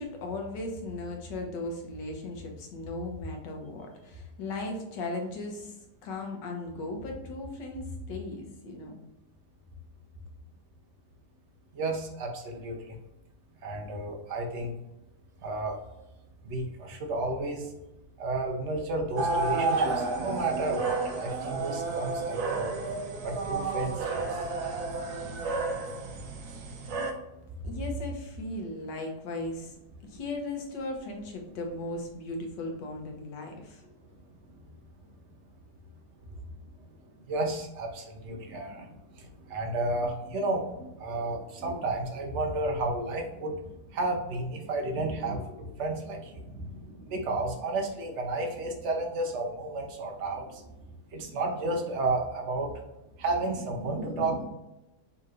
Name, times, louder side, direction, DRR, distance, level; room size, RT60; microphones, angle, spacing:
voice 1, 0.0-5.8 6.0-9.0 27.6-33.8, left 2 dB, 85° left, 2 dB, 1.5 m, -37 dB
voice 2, 11.7-13.0 13.6-14.7 15.4-15.8 16.4-17.7 18.2-22.7 23.2-24.5 34.5-34.6 37.3-50.7 51.1-52.7 53.2-54.5, right 2 dB, 55° right, 1 dB, 0.9 m, -32 dB
sound 1, 19.2-27.1, right 4 dB, 70° right, 1.1 m, -31 dB
5.4 x 2.9 x 2.5 m, 0.96 s
omnidirectional pair, 1.8 m